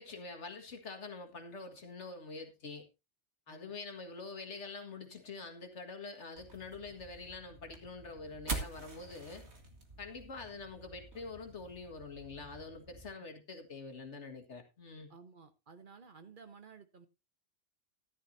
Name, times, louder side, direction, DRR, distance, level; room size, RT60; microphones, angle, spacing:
voice 1, 0.0-2.8 3.5-9.4 10.0-15.1, left 3 dB, 75° left, 4 dB, 2.0 m, -46 dB
sound 1, 6.3-13.1, right 3 dB, 65° right, 2.2 m, -46 dB
voice 2, 15.1-17.1, right 5 dB, 50° right, 10 dB, 1.0 m, -55 dB
14.0 x 11.0 x 2.7 m, 0.26 s
omnidirectional pair, 1.2 m